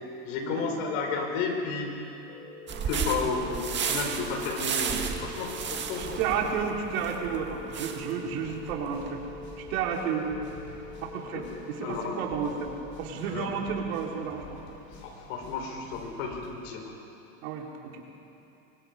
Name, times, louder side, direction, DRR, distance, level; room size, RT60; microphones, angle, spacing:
voice 1, 0.2-1.9 2.9-6.5 11.3-11.4 11.8-12.2 13.3-13.5 15.0-16.8, left 4 dB, 65° left, 1 dB, 5.4 m, -32 dB
sound 1, 2.3-12.8, left 4 dB, 80° left, 4.4 m, -45 dB
sound 2, 2.7-9.1, right 6 dB, 25° right, 1.9 m, -33 dB
voice 2, 6.0-9.2 9.6-10.3 11.0-14.6 17.4-18.0, right 7 dB, 75° right, 0 dB, 3.8 m, -32 dB
sound 3, 8.7-16.5, left 2 dB, 25° left, 5.2 m, -48 dB
25.5 x 24.0 x 5.5 m, 2.8 s
supercardioid pair, 140°, 42 cm